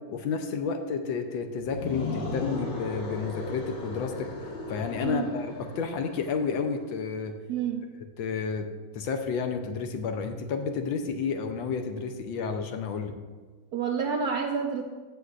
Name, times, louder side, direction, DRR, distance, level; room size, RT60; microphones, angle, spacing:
voice 1, 0.1-4.3 4.7-7.3 8.2-8.7 8.9-13.1, left 5 dB, 75° left, 6 dB, 1.4 m, -31 dB
sound 1, 1.6-6.6, left 2 dB, 40° left, 1.1 m, -36 dB
voice 2, 7.5-7.9 13.7-14.8, right 6 dB, 70° right, 3 dB, 0.9 m, -29 dB
14.0 x 7.7 x 2.5 m, 1.4 s
omnidirectional pair, 2.3 m